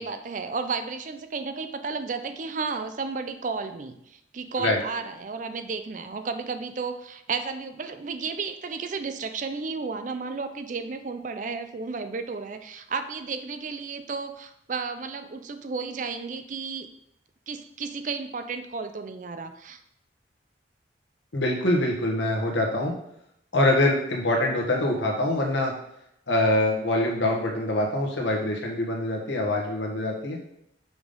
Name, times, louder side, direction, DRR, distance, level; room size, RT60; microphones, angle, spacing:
voice 1, 0.0-16.9 17.5-19.8, right 4 dB, 40° right, 9 dB, 0.4 m, -33 dB
voice 2, 21.3-22.9 23.5-25.7 26.3-30.4, left 1 dB, 80° left, 0 dB, 1.5 m, -24 dB
6.1 x 5.2 x 3.7 m, 0.77 s
head